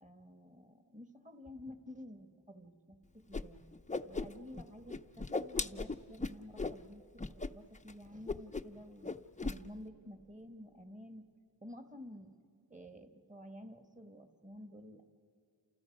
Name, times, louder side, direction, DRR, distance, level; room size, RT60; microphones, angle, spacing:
voice 1, 0.0-3.6 4.0-9.1 9.4-11.3 11.6-12.3 12.7-15.0, left 1 dB, 15° right, 7 dB, 1.4 m, -51 dB
Whoosh swoosh swish, 3.3-3.4 3.7-4.6 4.9-6.8 7.2-7.5 7.7-7.9 8.3-8.8 9.0-9.6, left 3 dB, 15° left, 0.5 m, -37 dB
29.5 x 28.0 x 5.3 m, 2.5 s
wide cardioid pair, 80°, 46 cm